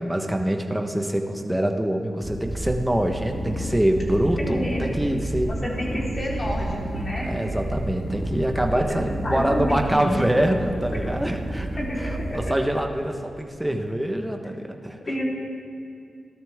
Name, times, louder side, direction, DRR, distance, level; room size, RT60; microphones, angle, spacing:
voice 1, 0.0-5.5 7.2-15.0, right 1 dB, 10° right, 3 dB, 1.3 m, -25 dB
sound 1, 2.2-12.5, right 1 dB, 25° right, 1.7 m, -31 dB
voice 2, 4.4-4.9 5.4-7.3 8.7-9.0 9.2-10.1 11.8-12.4 15.1-15.2, equal, 40° left, -4 dB, 4.1 m, -29 dB
18.0 x 12.5 x 3.7 m, 2.4 s
cardioid pair, 60°, 0 cm